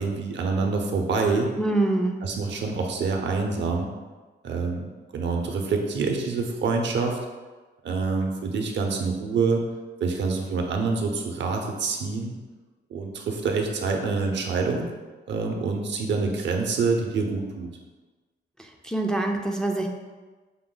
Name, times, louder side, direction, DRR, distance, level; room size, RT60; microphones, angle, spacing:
voice 1, 0.0-1.5 2.2-3.9 4.4-7.2 7.8-9.6 10.0-12.4 12.9-14.9 15.3-17.7, right 4 dB, 65° right, 2 dB, 0.7 m, -26 dB
voice 2, 1.6-2.2 18.6-19.9, right 2 dB, 5° left, 1 dB, 0.4 m, -25 dB
5.8 x 2.1 x 3.8 m, 1.3 s
cardioid pair, 105°, 20 cm